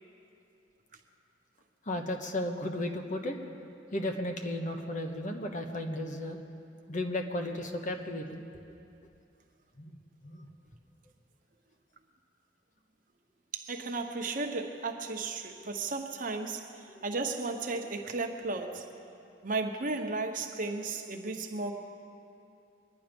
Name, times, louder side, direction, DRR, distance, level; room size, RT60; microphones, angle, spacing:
voice 1, 1.9-3.4 3.9-6.4 6.9-8.4 9.8-9.9 10.2-10.5 16.9-17.0, left 1 dB, 45° left, 3 dB, 1.1 m, -34 dB
voice 2, 13.5-18.9 19.4-21.7, right 3 dB, 45° right, 4 dB, 1.0 m, -34 dB
23.5 x 10.0 x 5.3 m, 2.7 s
head